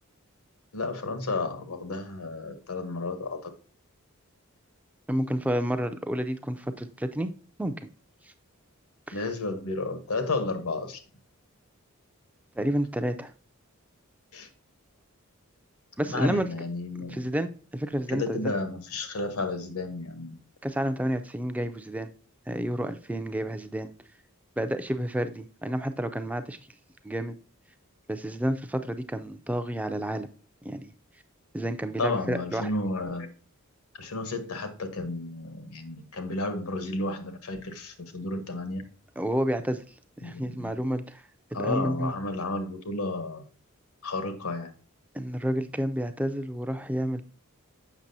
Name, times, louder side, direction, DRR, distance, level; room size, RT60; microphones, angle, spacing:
voice 1, 0.7-3.4 9.1-11.0 14.3-14.5 16.1-17.3 18.1-20.4 32.0-33.3 33.9-38.8 40.2-40.8 41.5-43.4 44.0-44.7, left 2 dB, 85° left, 8 dB, 1.0 m, -32 dB
voice 2, 5.1-7.3 7.6-7.9 8.2-8.3 9.1-9.3 12.6-13.3 16.0-16.5 17.1-18.5 20.6-22.1 22.5-23.9 24.6-26.6 27.0-27.4 28.1-30.3 30.6-30.9 31.5-32.7 39.2-41.2 41.5-42.1 45.1-47.2, equal, 5° right, 9 dB, 0.3 m, -30 dB
7.3 x 6.0 x 2.6 m, 0.39 s
head